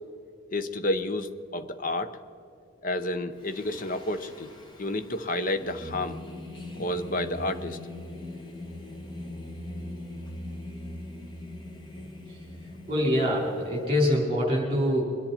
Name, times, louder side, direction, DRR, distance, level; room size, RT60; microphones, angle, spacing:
voice 1, 0.5-2.2 2.8-4.5 4.8-6.2 6.8-7.8, left 1 dB, 40° left, 9 dB, 0.8 m, -30 dB
Singing, 3.4-13.8, left 1 dB, 20° left, 1.4 m, -41 dB
voice 2, 12.9-15.0, equal, 25° right, -2 dB, 4.5 m, -24 dB
23.5 x 10.5 x 4.4 m, 2.6 s
head